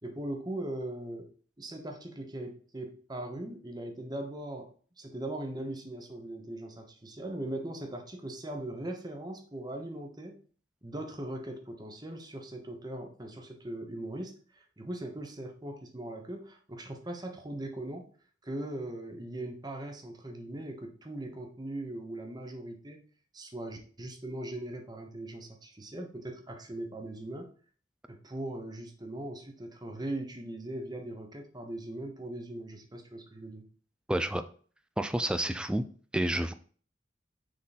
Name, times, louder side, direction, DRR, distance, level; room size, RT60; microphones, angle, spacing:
voice 1, 0.0-1.3 1.6-4.7 5.0-10.4 10.8-18.1 18.4-23.1 23.3-27.5 28.1-33.7, right 1 dB, 20° right, 3 dB, 1.0 m, -40 dB
voice 2, 34.1-34.4 35.0-35.9 36.1-36.5, right 1 dB, 5° right, 10 dB, 0.3 m, -29 dB
6.2 x 3.8 x 4.1 m, 0.43 s
head